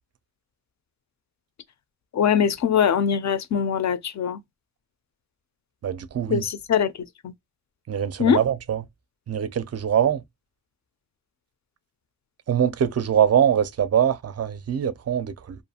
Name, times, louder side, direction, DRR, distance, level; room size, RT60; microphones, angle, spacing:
voice 1, 2.1-4.4 6.3-6.9 7.2-7.3 8.2-8.4, left 7 dB, 50° left, 0.4 m, -22 dB
voice 2, 5.8-6.5 7.9-8.8 9.3-10.2 12.5-15.6, right 9 dB, 45° right, 0.4 m, -23 dB
2.5 x 2.3 x 2.7 m
wide cardioid pair, 80°, 36 cm